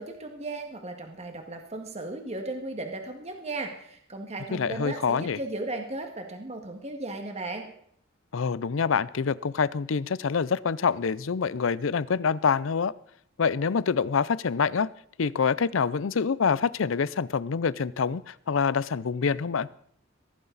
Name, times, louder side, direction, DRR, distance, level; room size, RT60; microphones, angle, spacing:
voice 1, 0.0-7.7, right 2 dB, 35° right, 4 dB, 1.8 m, -36 dB
voice 2, 4.5-5.4 8.3-12.9 13.4-14.9 15.2-19.7, left 5 dB, 80° left, 20 dB, 0.5 m, -26 dB
16.5 x 14.5 x 4.1 m, 0.65 s
head